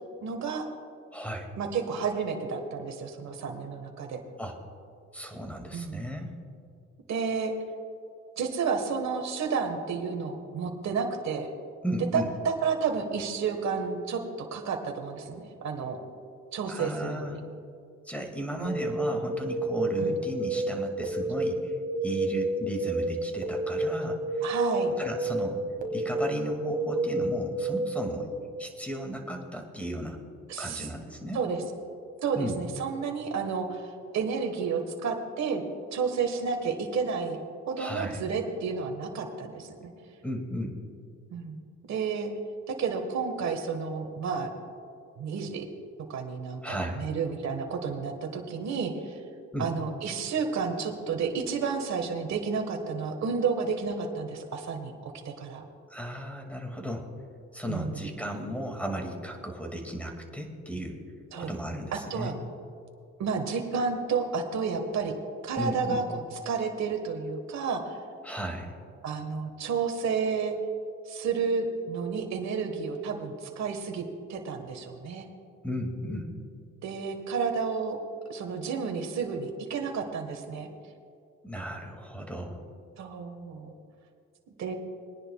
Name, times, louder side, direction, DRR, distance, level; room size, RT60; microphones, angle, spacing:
voice 1, 0.2-0.6 1.6-4.2 5.7-6.0 7.1-7.5 8.4-11.5 12.1-16.0 16.5-17.4 18.6-18.8 20.0-20.2 24.4-24.9 30.5-30.9 31.3-31.6 32.2-35.6 35.9-37.4 37.7-39.9 41.3-41.6 41.9-42.3 42.7-44.5 45.2-45.7 46.1-49.2 49.6-55.6 57.7-58.1 61.3-61.5 62.1-62.3 63.2-65.1 65.4-68.0 69.0-70.6 71.1-74.0 74.3-75.3 76.8-78.0 78.3-80.7 83.0-83.7 84.6-84.7, right 5 dB, 65° right, 4 dB, 1.5 m, -31 dB
voice 2, 1.1-1.5 4.4-4.5 5.1-6.3 11.8-12.3 16.7-17.4 18.1-21.8 22.0-24.5 24.8-25.6 25.9-28.3 28.6-30.2 30.6-31.4 32.4-32.6 37.8-38.2 40.2-40.8 46.6-47.1 49.5-49.7 55.9-57.1 57.5-61.0 61.4-62.3 65.6-66.0 68.2-68.8 75.6-76.3 81.4-82.6, equal, 5° left, 3 dB, 2.2 m, -35 dB
sound 1, 18.6-28.2, right 1 dB, 30° right, 1.6 m, -30 dB
23.0 x 10.0 x 2.3 m, 2.4 s
cardioid pair, 90°, 30 cm